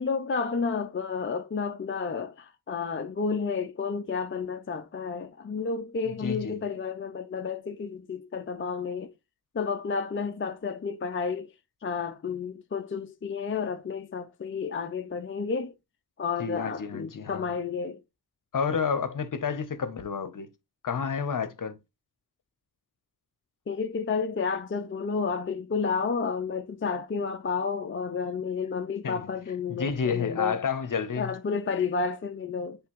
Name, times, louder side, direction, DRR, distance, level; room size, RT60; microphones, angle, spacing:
voice 1, 0.0-9.1 9.5-11.5 11.8-15.7 16.2-18.0 23.7-30.6 31.2-32.8, left 5 dB, 30° left, 0.5 m, -31 dB
voice 2, 6.2-6.5 16.4-17.4 18.5-20.5 20.8-21.8 29.0-29.2 29.7-31.3, left 6 dB, 55° left, 0.8 m, -30 dB
9.4 x 3.4 x 3.0 m
wide cardioid pair, 150°, 38 cm